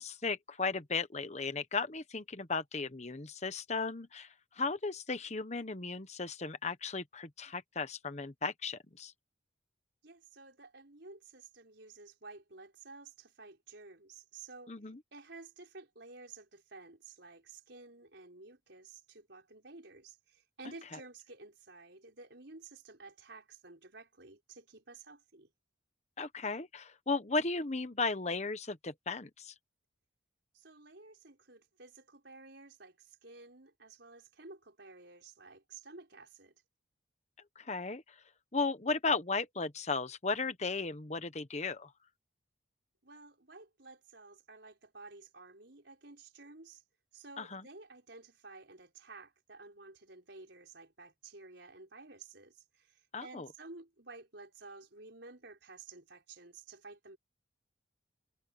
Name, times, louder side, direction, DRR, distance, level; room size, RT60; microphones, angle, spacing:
voice 1, 0.0-9.1 14.7-15.0 26.2-29.5 37.6-38.0 38.5-41.9 47.4-47.6 53.1-53.5, left 4 dB, 35° left, 1.1 m, -35 dB
voice 2, 10.0-14.7 15.1-25.5 30.5-36.5 43.0-46.8 47.1-57.2, right 3 dB, 65° right, 4.8 m, -53 dB
head